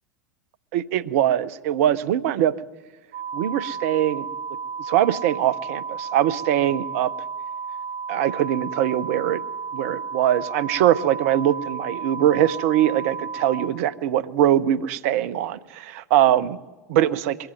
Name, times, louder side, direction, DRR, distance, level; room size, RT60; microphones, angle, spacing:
voice 1, 0.7-2.5 3.3-4.3 4.8-7.1 8.1-9.4 9.7-16.6 16.9-17.4, right 11 dB, 55° right, 16 dB, 0.8 m, -22 dB
sound 1, 3.1-13.7, right 5 dB, 70° right, 1.7 m, -33 dB
22.0 x 16.0 x 9.2 m, 1.2 s
figure-of-eight pair, 80°, 9 cm